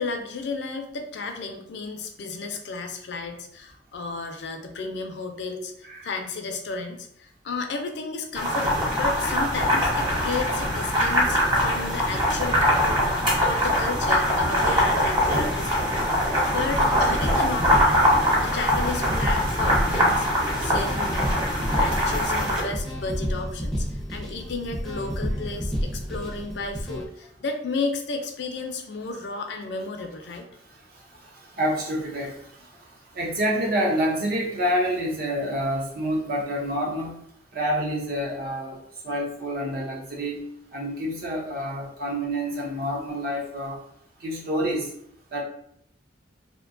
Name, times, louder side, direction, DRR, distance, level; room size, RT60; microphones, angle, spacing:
voice 1, 0.0-15.9 16.5-18.1 18.4-20.3 20.6-21.5 21.8-30.5, left 3 dB, 70° left, 5 dB, 0.4 m, -33 dB
sound 1, 8.4-22.6, equal, 25° right, 1.0 m, -23 dB
sound 2, 16.3-27.0, equal, ahead, 0.5 m, -31 dB
voice 2, 30.7-37.2 37.5-38.8 39.0-40.5 40.7-43.8 44.2-44.9 45.3-45.4, equal, 60° right, -2 dB, 0.7 m, -28 dB
2.6 x 2.2 x 2.5 m, 0.70 s
head